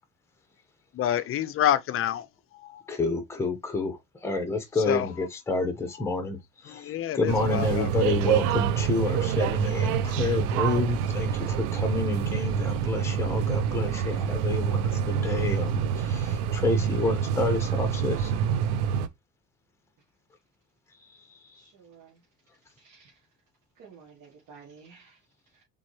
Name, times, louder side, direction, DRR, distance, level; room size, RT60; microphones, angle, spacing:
voice 1, 0.9-2.3 2.6-2.8 4.9-5.1 6.7-7.9, left 11 dB, 40° left, 0.5 m, -27 dB
voice 2, 2.9-18.4 21.1-21.6, left 3 dB, 10° left, 1.1 m, -29 dB
sound 1, 7.3-19.1, right 8 dB, 90° right, 0.7 m, -27 dB
voice 3, 21.5-22.2 22.8-23.3 23.8-25.6, right 5 dB, 60° right, 1.8 m, -53 dB
4.0 x 3.7 x 3.2 m
cardioid pair, 125°, 33 cm